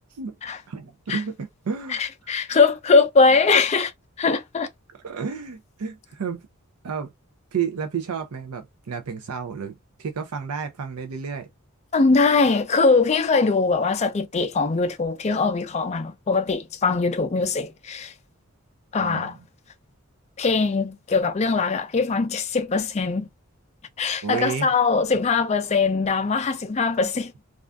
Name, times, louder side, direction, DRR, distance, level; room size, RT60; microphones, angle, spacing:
voice 1, 0.7-2.0 2.5-2.6 4.9-6.5 6.8-7.1 7.5-11.5 19.0-19.4 24.2-24.7, right 6 dB, 90° right, 0.5 m, -31 dB
voice 2, 1.9-3.9 4.2-4.7 11.9-18.1 18.9-19.4 20.4-23.3 24.0-27.3, left 4 dB, 30° left, 0.4 m, -21 dB
2.4 x 2.4 x 3.3 m
head